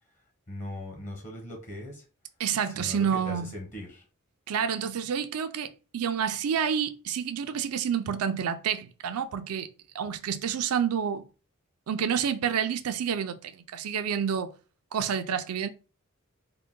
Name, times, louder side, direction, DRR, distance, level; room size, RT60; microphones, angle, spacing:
voice 1, 0.5-2.0 2.7-4.0, left 1 dB, 35° left, 0.9 m, -39 dB
voice 2, 2.4-3.6 4.5-11.3 11.9-14.6 14.9-15.7, right 7 dB, 70° right, 0.4 m, -29 dB
3.7 x 2.2 x 3.7 m
head